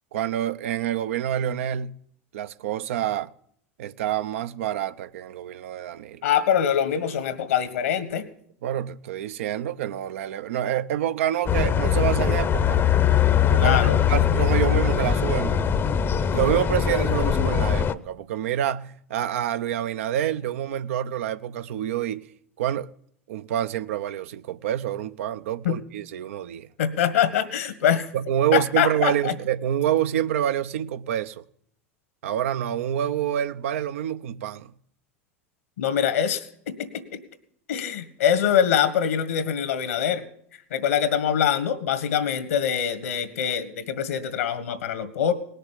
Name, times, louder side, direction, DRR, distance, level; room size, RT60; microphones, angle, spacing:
voice 1, 0.1-2.0 2.3-3.3 3.8-6.2 8.6-12.8 13.5-15.6 16.3-22.2 22.6-22.9 23.3-26.7 28.1-31.4 32.2-34.7, right 11 dB, 75° right, 0.7 m, -27 dB
voice 2, 6.2-8.3 13.6-14.0 25.6-25.8 26.8-28.1 28.5-29.3 35.8-37.2 37.7-40.2 40.7-45.3, left 9 dB, 80° left, 1.7 m, -24 dB
sound 1, 11.5-17.9, left 9 dB, 30° left, 0.8 m, -21 dB
18.5 x 6.7 x 10.0 m
hypercardioid pair, 90°, 7 cm